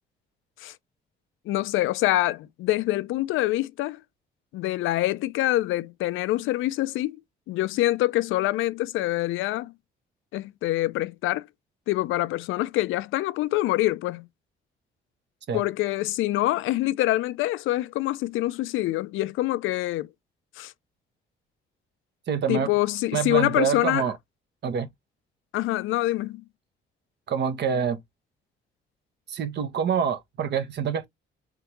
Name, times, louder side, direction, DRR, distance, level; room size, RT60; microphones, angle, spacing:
voice 1, 1.5-4.0 4.5-7.2 7.5-9.7 10.3-11.5 11.9-14.3 15.5-20.1 20.6-20.7 22.5-24.1 25.5-26.4, left 16 dB, 85° left, 0.4 m, -25 dB
voice 2, 22.3-22.7 23.1-24.1 24.6-24.9 27.3-28.0 29.3-31.1, right 7 dB, 60° right, 1.0 m, -26 dB
3.6 x 3.5 x 2.9 m
cardioid pair, 90°, 20 cm